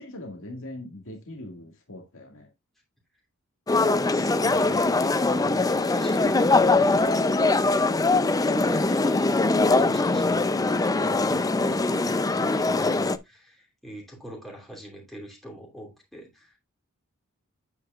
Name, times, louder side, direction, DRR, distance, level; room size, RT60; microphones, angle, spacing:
voice 1, 0.0-2.5, left 1 dB, 65° left, 2.0 m, -41 dB
sound 1, 3.7-13.2, left 3 dB, 15° left, 0.5 m, -22 dB
voice 2, 4.1-7.1 7.9-9.3 9.8-10.5 10.9-16.6, right 1 dB, ahead, 2.9 m, -41 dB
8.8 x 8.2 x 2.4 m
head